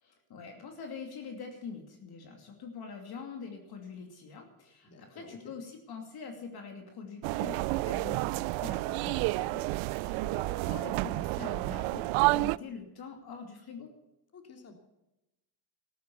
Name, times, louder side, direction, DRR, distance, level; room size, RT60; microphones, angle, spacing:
voice 1, 0.0-13.9, left 5 dB, 50° left, 4 dB, 2.8 m, -44 dB
voice 2, 4.8-5.5 10.0-10.5 14.3-14.7, left 3 dB, 30° left, 5 dB, 2.9 m, -51 dB
sound 1, 7.2-12.6, right 21 dB, 75° right, 0.6 m, -30 dB
14.5 x 11.0 x 7.1 m, 0.93 s
cardioid pair, 115°, 47 cm